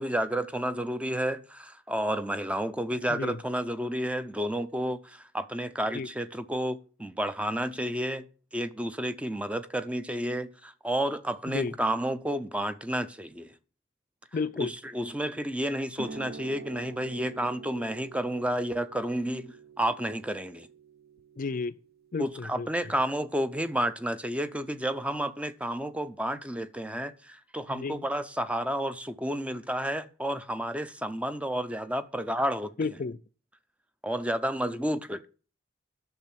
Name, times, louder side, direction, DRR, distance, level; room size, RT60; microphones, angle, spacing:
voice 1, 0.0-8.3 8.5-13.5 14.6-20.7 22.2-32.7 34.0-35.3, right 1 dB, 5° right, 0.6 m, -31 dB
voice 2, 14.3-14.7 21.4-21.8 22.1-22.7 27.7-28.1 32.8-33.2, left 4 dB, 40° left, 0.4 m, -32 dB
sound 1, 16.0-23.1, right 5 dB, 45° right, 0.7 m, -47 dB
10.5 x 6.9 x 7.3 m
head